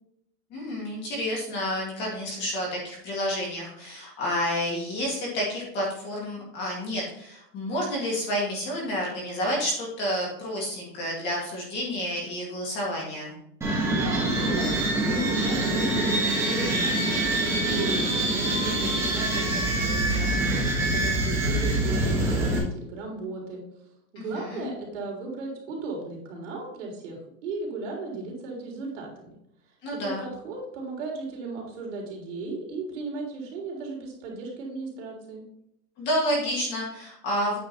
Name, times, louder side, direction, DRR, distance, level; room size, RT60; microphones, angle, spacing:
voice 1, 0.5-13.3 24.2-24.7 29.8-30.2 36.0-37.6, equal, 20° left, -3 dB, 2.2 m, -30 dB
sound 1, 13.6-22.6, right 1 dB, 5° right, 1.4 m, -25 dB
voice 2, 13.8-17.3 17.5-23.6 24.1-29.1 30.0-35.4, right 3 dB, 45° right, -1 dB, 3.6 m, -36 dB
9.1 x 5.3 x 4.2 m, 0.73 s
supercardioid pair, 170°, 48 cm